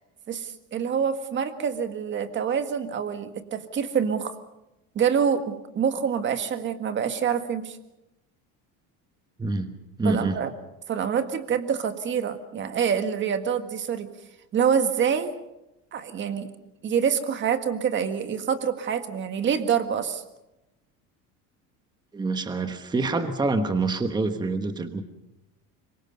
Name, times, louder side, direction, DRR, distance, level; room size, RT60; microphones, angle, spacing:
voice 1, 0.3-4.3 4.9-7.8 10.0-10.5 10.9-14.1 14.5-15.3 15.9-16.5 16.8-20.2, right 7 dB, 30° right, 8 dB, 1.8 m, -26 dB
voice 2, 9.4-9.7 10.0-10.4 22.1-25.0, right 3 dB, 10° right, 8 dB, 1.2 m, -26 dB
26.0 x 24.0 x 5.3 m, 0.92 s
cardioid pair, 160°, 35 cm